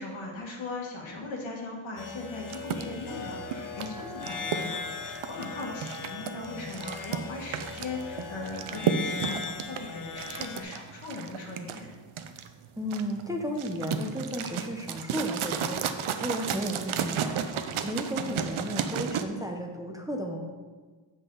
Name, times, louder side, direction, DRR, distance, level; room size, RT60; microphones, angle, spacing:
voice 1, 0.0-11.9 18.1-18.6, left 3 dB, 75° left, -1 dB, 1.9 m, -39 dB
sound 1, 2.0-10.6, left 4 dB, 45° left, 0.9 m, -38 dB
sound 2, 2.5-19.2, right 7 dB, 85° right, 0.7 m, -33 dB
voice 2, 12.8-20.5, equal, 5° right, 1 dB, 0.7 m, -34 dB
8.0 x 7.4 x 3.9 m, 1.4 s
wide cardioid pair, 150°, 47 cm